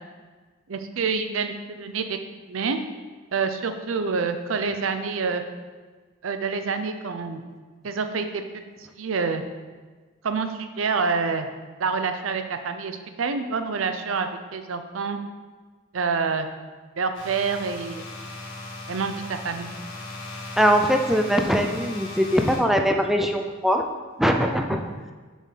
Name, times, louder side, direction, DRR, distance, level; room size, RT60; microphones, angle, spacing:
voice 1, 0.7-2.2 2.5-2.8 3.3-5.4 6.2-7.4 7.8-8.4 8.8-9.4 10.2-11.5 11.8-15.2 15.9-16.5 17.0-18.0 18.9-19.7, right 5 dB, 85° right, 8 dB, 0.6 m, -27 dB
sound 1, 17.1-22.6, left 2 dB, 65° left, 1.7 m, -38 dB
voice 2, 20.6-23.8 24.2-24.8, equal, ahead, 4 dB, 0.4 m, -21 dB
7.2 x 5.4 x 3.3 m, 1.4 s
head